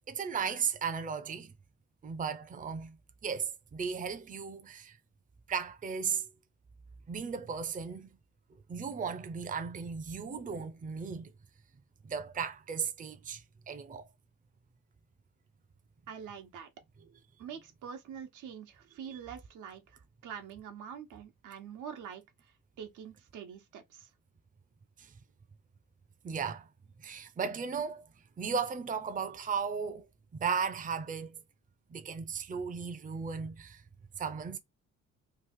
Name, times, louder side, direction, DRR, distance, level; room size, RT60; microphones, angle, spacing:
voice 1, 0.1-1.5 2.0-3.0 3.2-5.0 5.5-6.3 7.1-8.2 8.7-11.3 12.0-14.1 17.0-17.2 19.0-19.2 25.0-25.1 26.2-26.7 27.0-28.1 28.4-30.1 30.3-31.4 31.9-33.8 34.2-34.6, right 6 dB, 25° right, 0.6 m, -36 dB
voice 2, 16.1-16.7 17.4-19.8 20.2-22.2 22.8-24.1, right 8 dB, 85° right, 1.1 m, -45 dB
3.2 x 2.4 x 3.6 m
cardioid pair, 90°, 30 cm